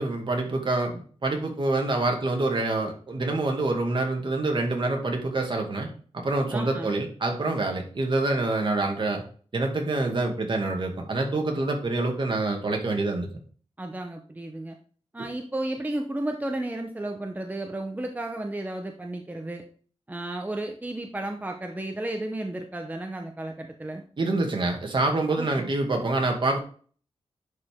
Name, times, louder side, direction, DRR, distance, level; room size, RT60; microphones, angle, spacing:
voice 1, 0.0-5.9 6.1-9.2 9.5-13.3 24.2-26.6, right 2 dB, 50° right, 2 dB, 2.2 m, -26 dB
voice 2, 6.5-7.0 13.8-14.8 15.1-19.6 20.1-24.0 25.4-25.7, right 1 dB, 15° right, 3 dB, 0.8 m, -33 dB
10.5 x 4.9 x 3.7 m, 0.43 s
wide cardioid pair, 110°, 11 cm